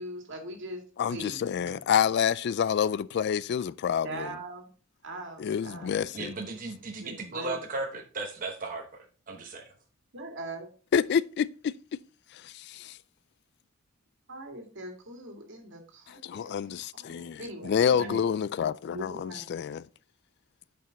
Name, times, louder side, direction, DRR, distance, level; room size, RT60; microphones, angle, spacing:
voice 1, 0.0-0.8 1.1-1.8 4.0-4.7 5.0-6.0 7.0-7.6 10.1-10.7 14.3-17.8 18.9-19.6, right 1 dB, 60° right, 2.2 m, -41 dB
voice 2, 1.0-4.3 5.4-6.3 10.9-11.7 12.3-13.0 16.1-19.9, left 7 dB, 55° left, 0.3 m, -28 dB
voice 3, 6.1-9.7 18.0-18.2, right 3 dB, 40° right, 0.9 m, -36 dB
8.8 x 5.3 x 4.0 m
head